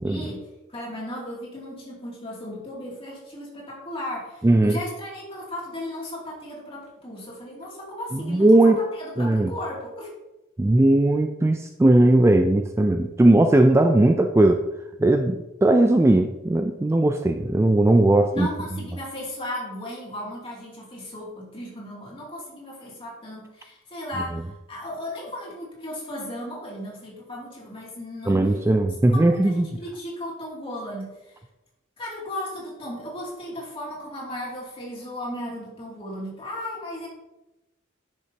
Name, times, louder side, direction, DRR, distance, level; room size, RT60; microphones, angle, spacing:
voice 1, 0.0-10.1 18.3-28.6 29.1-31.4 32.0-37.1, left 1 dB, 30° left, -4 dB, 2.7 m, -36 dB
voice 2, 4.4-4.8 8.1-8.8 9.2-9.5 10.6-14.7 15.0-18.5 28.3-29.7, right 1 dB, 15° right, 6 dB, 0.3 m, -18 dB
10.0 x 6.8 x 2.9 m, 0.97 s
head